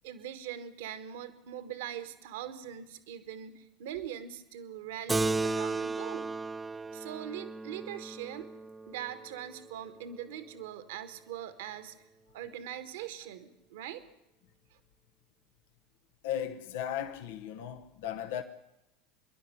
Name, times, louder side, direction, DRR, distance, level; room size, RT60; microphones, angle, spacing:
voice 1, 0.0-6.3 6.9-8.5 8.9-11.9 12.3-14.0 14.7-14.8, right 10 dB, 65° right, 1.6 m, -42 dB
Keyboard (musical), 5.1-10.0, right 3 dB, 15° right, 0.8 m, -35 dB
voice 2, 16.2-18.4, left 10 dB, 65° left, 1.1 m, -36 dB
24.5 x 11.5 x 9.9 m
figure-of-eight pair, 75°, 0 cm